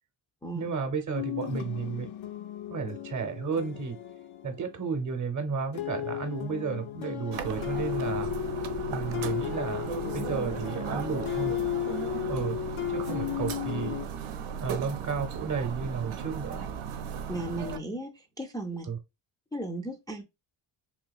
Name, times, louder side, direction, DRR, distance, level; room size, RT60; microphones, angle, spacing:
voice 1, 0.5-2.1 2.7-4.0 4.4-8.3 8.9-11.5 12.3-12.6 12.9-14.0 14.6-16.6 18.9-19.0, right 5 dB, 40° right, 0.7 m, -33 dB
sound 1, 1.1-5.2 5.7-14.1, left 12 dB, 70° left, 0.6 m, -34 dB
sound 2, 7.3-17.8, right 7 dB, 85° right, 0.6 m, -36 dB
voice 2, 17.3-18.9 19.5-20.2, right 1 dB, 10° left, 0.3 m, -35 dB
3.8 x 2.7 x 2.3 m
cardioid pair, 135°, 48 cm